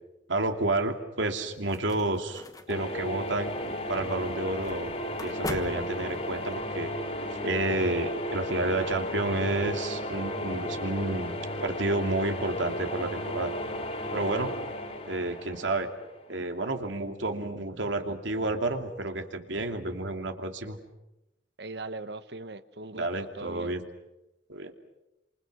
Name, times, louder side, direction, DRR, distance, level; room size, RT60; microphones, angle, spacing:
voice 1, 0.3-3.6 3.9-4.9 5.2-6.9 7.4-11.4 11.6-13.5 14.1-14.5 15.1-15.9 16.3-20.8 22.9-23.8 24.5-24.7, right 2 dB, 85° right, 5 dB, 2.9 m, -30 dB
sound 1, 1.2-6.6, left 1 dB, 20° left, 1.4 m, -42 dB
sound 2, 2.7-16.5, left 1 dB, 35° left, 3.2 m, -34 dB
voice 2, 21.6-23.8, right 3 dB, 60° right, 12 dB, 1.3 m, -40 dB
29.0 x 27.0 x 6.3 m, 0.92 s
head